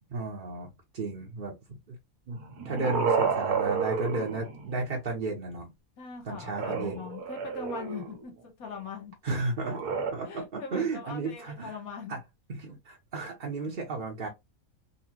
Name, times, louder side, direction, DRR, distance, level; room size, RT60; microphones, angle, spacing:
voice 1, 0.1-0.7 0.9-1.5 1.9-2.0 2.3-5.7 6.2-7.1 9.2-9.8 10.1-11.8 12.1-12.2 12.5-14.3, right 3 dB, 45° right, 0.8 m, -33 dB
sound 1, 2.3-5.0 6.5-8.2 9.6-10.1, right 5 dB, 85° right, 1.4 m, -30 dB
voice 2, 6.0-9.1 10.2-12.2, left 5 dB, 80° left, 1.7 m, -41 dB
4.0 x 2.7 x 2.8 m
omnidirectional pair, 1.5 m